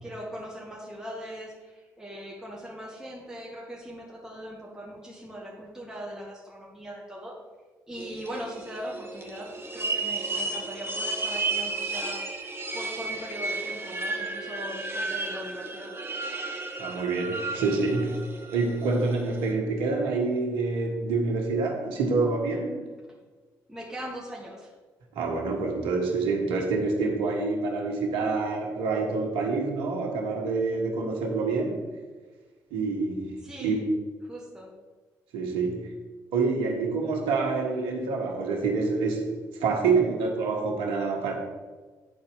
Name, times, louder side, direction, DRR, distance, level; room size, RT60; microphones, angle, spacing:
voice 1, 0.0-7.3 7.9-12.2 12.7-16.0 23.7-24.7 33.4-33.8 34.2-34.7, equal, 5° right, -4 dB, 1.9 m, -40 dB
sound 1, 8.0-19.5, right 3 dB, 25° right, 1.5 m, -33 dB
voice 2, 16.8-18.3 18.5-22.9 25.1-31.9 32.7-33.8 35.3-35.9 36.3-41.3, right 4 dB, 80° right, 2 dB, 1.4 m, -27 dB
9.1 x 4.2 x 5.4 m, 1.4 s
hypercardioid pair, 50°, 9 cm